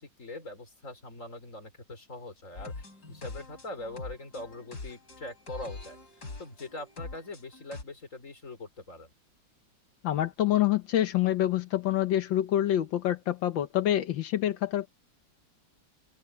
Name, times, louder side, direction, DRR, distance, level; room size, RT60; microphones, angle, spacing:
voice 1, 0.0-6.0 6.4-9.1, left 2 dB, 40° left, 4.6 m, -42 dB
sound 1, 2.6-7.8, left 3 dB, 55° left, 4.2 m, -44 dB
voice 2, 10.0-14.9, left 12 dB, 85° left, 1.7 m, -26 dB
open air
omnidirectional pair, 2.0 m